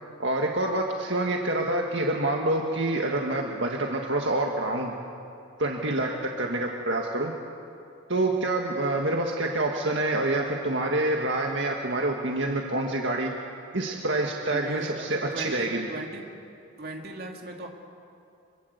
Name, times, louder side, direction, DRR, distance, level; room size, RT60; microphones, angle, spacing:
voice 1, 0.2-4.9 5.6-7.3 8.1-13.3 13.7-15.9, right 2 dB, 70° right, 1 dB, 1.8 m, -27 dB
voice 2, 14.5-16.2 16.8-17.7, right 2 dB, 50° right, 1 dB, 2.8 m, -38 dB
26.5 x 23.5 x 8.2 m, 2.6 s
head